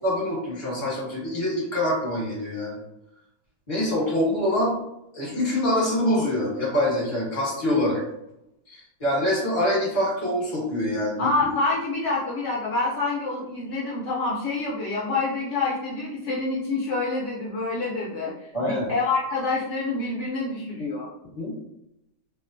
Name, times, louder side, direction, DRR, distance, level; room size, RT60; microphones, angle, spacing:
voice 1, 0.0-2.8 3.7-4.7 5.1-8.0 8.7-11.5 18.5-18.9 20.8-20.9 21.4-21.5, left 1 dB, 25° left, -5 dB, 1.1 m, -25 dB
voice 2, 11.2-21.1, left 3 dB, 70° left, -5 dB, 0.7 m, -27 dB
2.8 x 2.0 x 2.5 m, 0.82 s
omnidirectional pair, 1.7 m